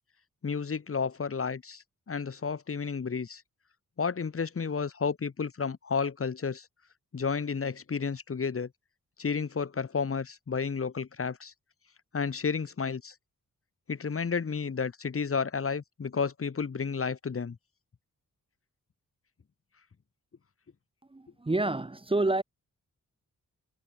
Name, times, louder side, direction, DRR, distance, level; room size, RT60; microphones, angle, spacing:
voice 1, 0.4-3.4 4.0-6.7 7.1-8.7 9.2-11.5 12.1-13.1 13.9-17.6, left 5 dB, 40° left, 2.7 m, -31 dB
voice 2, 21.1-22.4, right 2 dB, 15° right, 1.6 m, -28 dB
wide cardioid pair, 160°, 33 cm